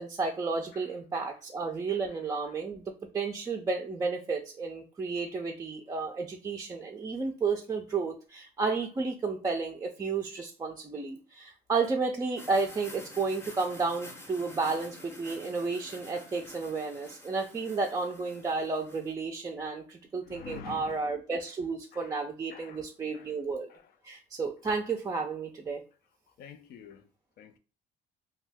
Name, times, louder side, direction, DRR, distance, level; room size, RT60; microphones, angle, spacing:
voice 1, 0.0-2.8 3.1-23.7 24.0-25.8, right 4 dB, 20° right, 0.4 m, -32 dB
voice 2, 1.9-2.2 20.3-21.0 21.9-22.2 22.5-23.3 23.7-23.9 26.4-27.1 27.4-27.6, left 7 dB, 65° left, 0.5 m, -48 dB
sound 1, 12.4-19.1, left 1 dB, 15° left, 0.7 m, -49 dB
2.6 x 2.3 x 3.3 m
cardioid pair, 110°, 17 cm